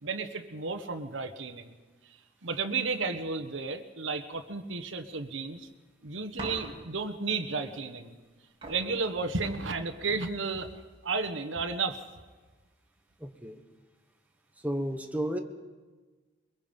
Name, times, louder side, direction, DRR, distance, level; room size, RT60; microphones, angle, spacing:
voice 1, 0.0-1.7 2.4-5.7 6.0-8.2 8.7-12.0, right 4 dB, 80° right, 9 dB, 1.3 m, -33 dB
sound 1, 6.4-7.1 8.2-8.3 8.6-10.1 10.8-11.3, right 1 dB, 30° right, 6.3 m, -43 dB
voice 2, 13.2-13.6 14.6-15.4, equal, 10° right, 4 dB, 1.4 m, -32 dB
23.0 x 22.0 x 5.4 m, 1.3 s
head